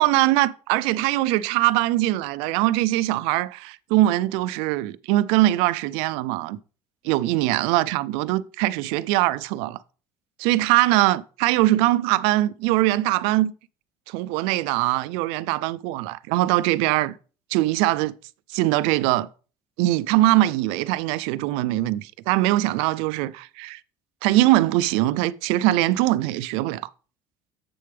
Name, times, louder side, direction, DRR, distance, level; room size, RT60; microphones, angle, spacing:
voice 1, 0.0-6.6 7.0-9.8 10.4-13.5 14.1-17.2 17.5-18.1 18.5-19.3 19.8-23.8 24.2-26.9, right 16 dB, 90° right, 0.4 m, -22 dB
7.7 x 6.5 x 3.4 m
cardioid pair, 130°, 9 cm